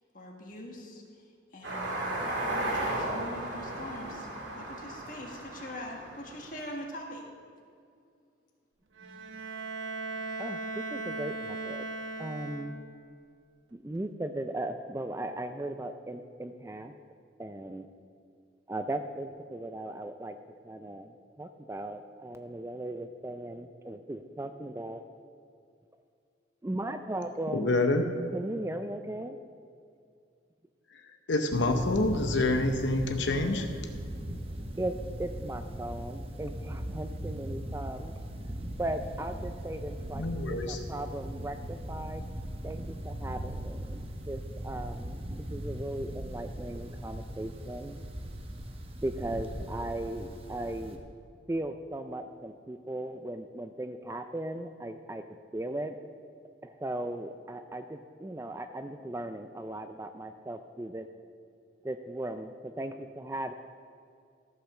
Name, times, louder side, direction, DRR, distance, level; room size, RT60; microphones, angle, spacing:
voice 1, 0.1-1.0 1.5-4.3 4.6-7.3, left 1 dB, 45° left, 0 dB, 1.7 m, -43 dB
sound 1, 1.6-6.6, right 1 dB, 75° right, 2.1 m, -35 dB
voice 2, 9.0-9.4 10.4-11.8 12.2-12.8 13.7-16.9 17.4-17.9 18.7-20.4 20.6-25.0 26.6-27.7 28.3-29.4 33.3-33.8 34.8-38.1 38.8-42.2 42.6-48.0 49.0-51.0 51.5-56.0 56.6-61.1 61.8-63.5, right 1 dB, 15° right, 8 dB, 0.3 m, -37 dB
Bowed string instrument, 9.0-13.1, right 2 dB, 90° right, 0.8 m, -38 dB
voice 3, 27.5-28.0 30.9-31.0 31.3-33.7 40.2-40.8, left 2 dB, 70° left, 5 dB, 0.8 m, -27 dB
sound 2, 31.5-51.0, right 1 dB, 30° right, 0.8 m, -39 dB
14.0 x 5.7 x 6.4 m, 2.3 s
head